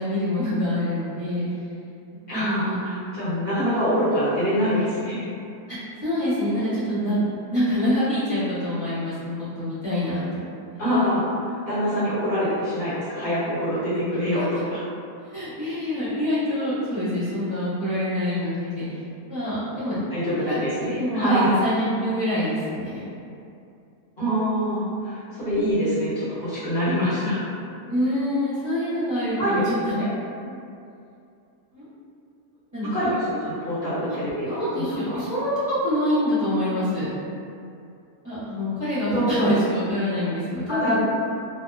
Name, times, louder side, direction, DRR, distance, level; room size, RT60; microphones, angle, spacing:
voice 1, 0.0-1.5 2.3-2.8 3.6-4.0 5.7-5.8 6.0-7.2 7.5-10.5 14.3-14.7 15.2-20.0 20.5-20.6 20.9-23.1 27.9-30.1 30.4-30.7 31.7-31.9 32.7-33.1 34.4-37.1 38.2-41.0, left 1 dB, 20° right, -15 dB, 0.4 m, -26 dB
voice 2, 2.3-5.3 10.8-11.3 11.7-14.8 20.1-21.5 24.2-27.5 29.4-29.6 30.0-30.1 32.9-35.2 39.1-39.5 40.7-41.0, equal, 45° left, -13 dB, 1.1 m, -25 dB
2.8 x 2.0 x 2.4 m, 2.5 s
omnidirectional pair, 1.7 m